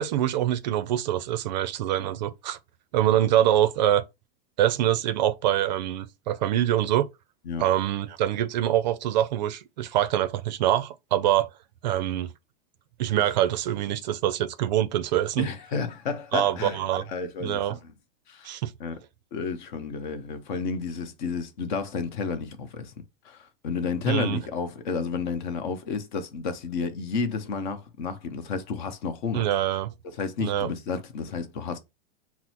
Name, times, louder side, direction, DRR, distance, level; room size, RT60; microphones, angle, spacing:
voice 1, 0.0-2.6 2.9-4.0 4.6-7.1 7.6-11.5 11.8-12.3 13.0-15.5 16.3-17.0 17.4-17.8 18.4-18.7 24.1-24.4 29.3-29.9 30.4-30.7, right 12 dB, 45° right, 0.4 m, -24 dB
voice 2, 15.4-16.8 17.1-17.9 18.3-18.5 18.8-19.0 19.3-22.9 23.2-29.5 30.2-31.8, left 5 dB, 50° left, 0.8 m, -31 dB
5.9 x 2.0 x 2.9 m
supercardioid pair, 170°, 30 cm